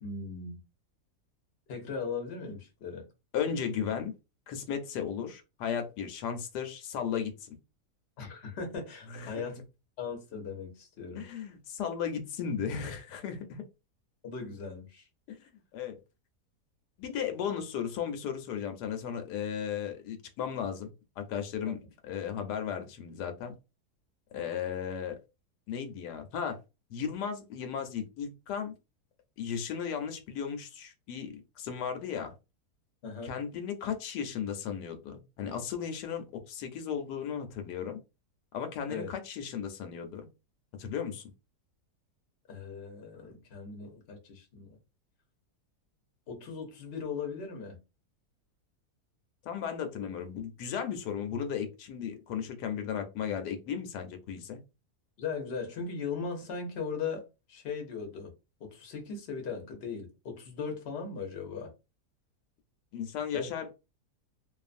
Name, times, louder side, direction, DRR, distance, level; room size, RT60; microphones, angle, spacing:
voice 1, 0.0-0.6 1.7-3.1 8.2-9.6 10.0-11.3 14.2-15.1 33.0-33.3 38.9-39.1 42.5-44.8 46.3-47.8 55.2-58.3 58.6-61.7 63.3-63.5, left 5 dB, 50° left, 0.9 m, -38 dB
voice 2, 3.3-4.1 4.5-7.5 9.1-9.6 11.2-13.6 15.3-16.0 17.0-20.9 21.2-21.8 22.0-23.5 24.3-25.2 25.7-26.6 26.9-28.7 29.4-32.3 33.2-38.0 38.5-40.3 40.8-41.2 49.4-54.6 62.9-63.7, left 7 dB, 90° left, 1.2 m, -35 dB
2.6 x 2.4 x 2.4 m
omnidirectional pair, 1.7 m